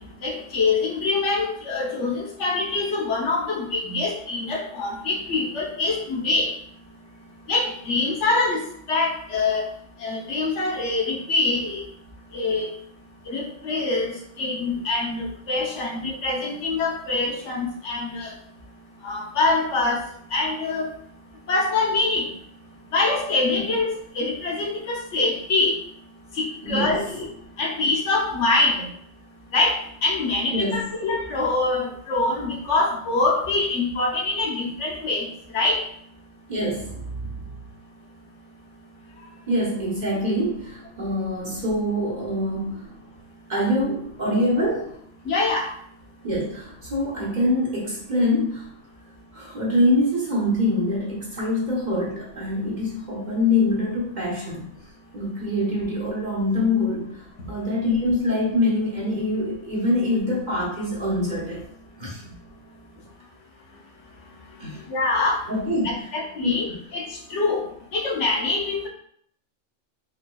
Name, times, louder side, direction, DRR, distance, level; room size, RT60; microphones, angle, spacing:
voice 1, 0.2-6.5 7.5-8.6 8.9-9.6 10.0-11.8 12.3-12.7 13.3-18.3 19.0-20.0 20.3-20.9 21.5-22.3 22.9-23.9 24.1-25.8 26.4-27.3 27.6-28.9 29.5-29.8 30.0-35.3 35.5-35.8 45.3-45.7 64.9-65.4 66.1-66.6 66.9-67.0 67.3-67.6 67.9-68.9, left 3 dB, 70° left, -1 dB, 1.1 m, -24 dB
voice 2, 26.6-27.0 30.5-30.8 36.5-37.4 39.5-42.9 43.5-44.9 46.2-48.7 49.3-54.7 55.1-57.2 57.5-61.6 62.0-62.2 64.6-64.8 65.5-66.0 66.4-66.8, left 1 dB, 40° right, -4 dB, 1.1 m, -24 dB
4.0 x 3.6 x 2.3 m, 0.66 s
omnidirectional pair, 1.3 m